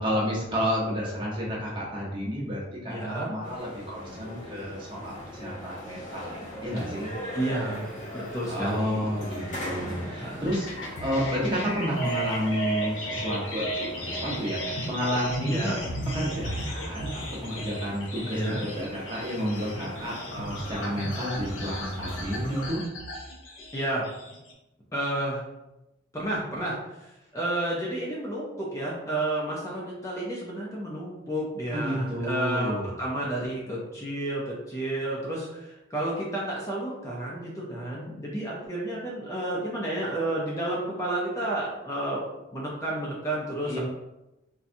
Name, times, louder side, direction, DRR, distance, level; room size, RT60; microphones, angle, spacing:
voice 1, 0.0-7.1 8.5-10.7 11.0-15.7 16.1-22.8 31.7-32.9 43.7-43.8, equal, 25° right, -5 dB, 0.9 m, -31 dB
voice 2, 2.9-3.3 7.3-7.9 8.1-9.2 9.6-10.5 15.5-15.8 18.3-18.6 23.7-24.1 24.9-25.4 26.1-42.2 42.5-43.8, right 1 dB, 15° left, -5 dB, 0.5 m, -31 dB
sound 1, 3.4-22.7, equal, 40° left, 0.9 m, -41 dB
sound 2, 10.4-24.5, right 1 dB, 70° left, 0.6 m, -35 dB
4.0 x 2.3 x 2.6 m, 0.94 s
head